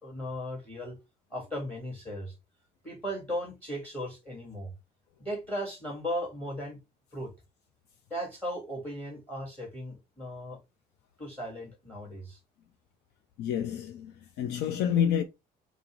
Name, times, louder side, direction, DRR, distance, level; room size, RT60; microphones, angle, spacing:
voice 1, 0.0-1.0 1.3-2.3 2.8-4.7 5.2-6.8 7.1-7.3 8.1-10.6 11.2-12.4, equal, 10° left, 1.8 m, -37 dB
voice 2, 13.4-15.2, left 9 dB, 75° left, 0.5 m, -28 dB
5.0 x 2.0 x 4.5 m
cardioid pair, 110°, 17 cm